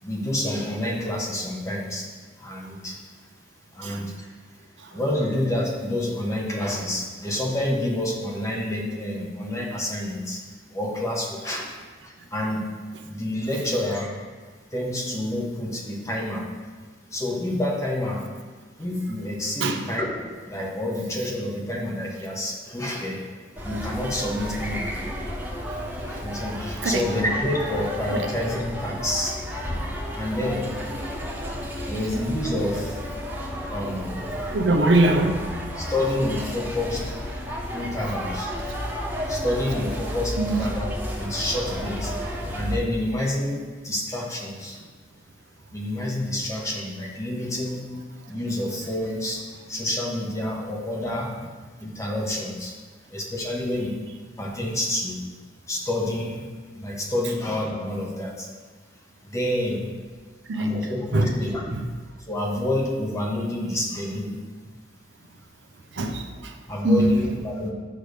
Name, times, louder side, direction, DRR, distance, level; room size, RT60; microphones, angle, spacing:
voice 1, 0.0-2.1 2.4-3.3 3.7-4.3 4.9-10.4 10.7-12.7 13.0-14.3 14.7-16.5 17.1-18.3 18.8-23.2 23.6-24.9 25.6-29.4 30.1-30.7 31.1-31.2 31.9-33.0 33.7-34.6 35.8-37.2 37.7-38.5 39.3-44.8 45.7-47.9 48.3-51.3 51.8-54.0 54.4-55.2 55.7-56.5 56.7-58.5 59.2-59.9 60.5-61.6 62.3-64.4 66.7-67.7, left 1 dB, 15° left, -2 dB, 1.2 m, -28 dB
sound 1, 23.6-42.8, equal, 10° right, 1.3 m, -32 dB
voice 2, 34.5-35.4 40.4-40.6 60.5-60.7 61.1-61.3 61.7-61.9 65.9-66.5 66.8-67.2, right 2 dB, 75° right, 5 dB, 0.7 m, -22 dB
8.6 x 3.3 x 6.6 m, 1.4 s
head